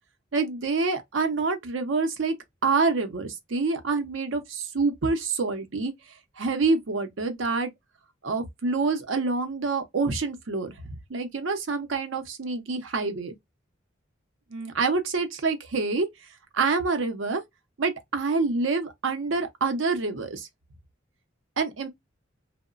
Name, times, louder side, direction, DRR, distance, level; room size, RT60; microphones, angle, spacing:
voice 1, 0.3-2.3 2.6-5.9 6.4-7.7 8.2-10.7 11.1-13.3 14.5-16.1 16.5-17.4 17.8-20.5 21.6-21.9, right 4 dB, 85° right, 0.6 m, -26 dB
2.9 x 2.1 x 2.4 m
head